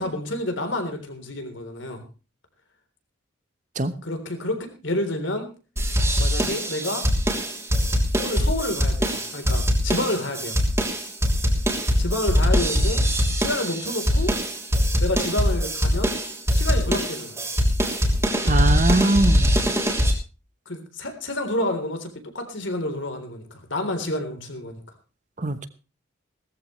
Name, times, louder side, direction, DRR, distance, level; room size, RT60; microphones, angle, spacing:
voice 1, 0.0-2.0 4.0-5.5 6.2-7.1 8.2-10.6 12.0-13.0 13.4-14.3 15.0-16.1 16.5-17.5 20.7-24.8, left 1 dB, 65° left, 6 dB, 3.7 m, -29 dB
sound 1, 5.8-20.1, equal, 15° right, 3.1 m, -22 dB
voice 2, 18.5-19.6 25.4-25.7, right 2 dB, 35° right, 12 dB, 1.0 m, -21 dB
18.0 x 14.0 x 3.2 m, 0.33 s
head